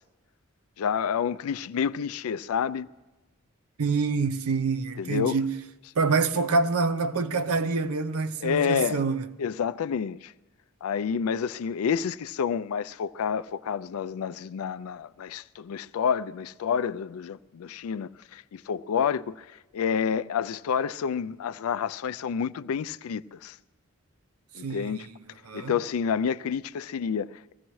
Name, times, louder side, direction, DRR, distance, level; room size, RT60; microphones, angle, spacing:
voice 1, 0.8-2.9 5.0-5.4 8.4-9.0 9.4-10.3 10.8-19.5 19.7-23.6 24.5-25.1 25.5-27.5, left 7 dB, 80° left, 0.4 m, -29 dB
voice 2, 3.8-5.6 6.0-9.3 24.6-25.0 25.5-25.8, right 4 dB, 90° right, 0.6 m, -26 dB
23.5 x 15.5 x 3.1 m
head